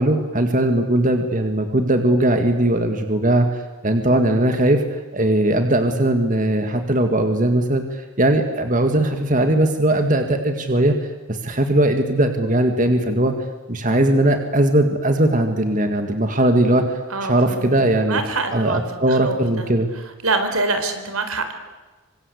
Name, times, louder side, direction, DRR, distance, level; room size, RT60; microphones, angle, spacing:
voice 1, 0.0-4.8 5.1-11.0 11.3-13.3 13.7-18.2 18.5-19.9, right 1 dB, 35° right, 6 dB, 2.0 m, -19 dB
voice 2, 17.1-17.8 18.1-18.8 19.1-19.7 20.2-21.5, right 3 dB, 80° right, 8 dB, 4.2 m, -25 dB
27.0 x 25.0 x 8.3 m, 1.2 s
head